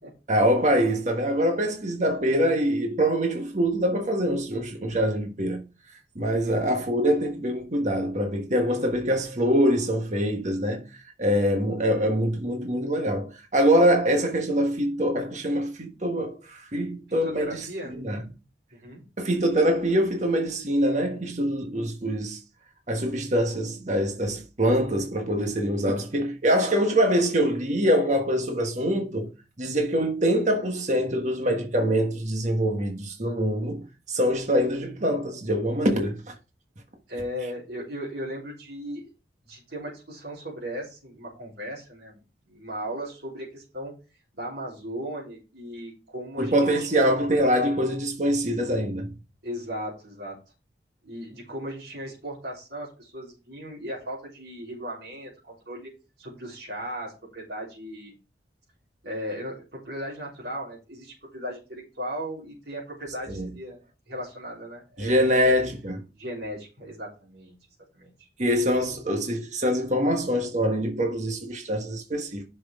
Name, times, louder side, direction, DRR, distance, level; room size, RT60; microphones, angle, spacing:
voice 1, 0.3-5.6 6.1-10.9 11.2-18.2 19.2-22.4 22.9-29.3 29.6-36.2 46.4-49.1 63.3-63.5 65.0-66.0 68.4-72.4, equal, 45° right, 1.4 m, -24 dB
voice 2, 6.3-6.7 17.2-18.0 18.7-19.0 37.1-39.1 39.5-42.2 42.5-43.9 44.3-46.9 49.4-50.4 51.0-55.9 56.2-58.1 59.0-63.8 64.1-65.6 66.1-67.6 67.9-68.3, equal, 75° right, 3.8 m, -37 dB
10.5 x 6.3 x 3.6 m
head